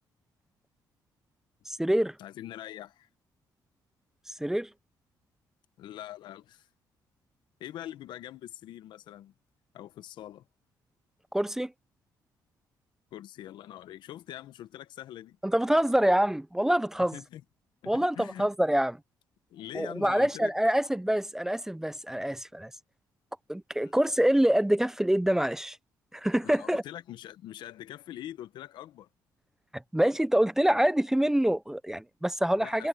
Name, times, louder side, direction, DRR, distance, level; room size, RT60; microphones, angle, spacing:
voice 1, 1.7-2.2 4.4-4.7 11.3-11.7 15.4-17.2 17.9-19.0 19.7-22.7 23.5-25.8 26.1-26.8 29.7-32.9, right 1 dB, 5° right, 0.5 m, -26 dB
voice 2, 2.2-3.1 5.8-6.7 7.6-9.3 9.7-10.4 13.1-15.4 17.0-17.4 17.8-18.5 19.5-20.5 23.8-23.9 26.4-29.1 32.5-32.9, left 12 dB, 85° left, 1.0 m, -43 dB
cardioid pair, 110°, 8 cm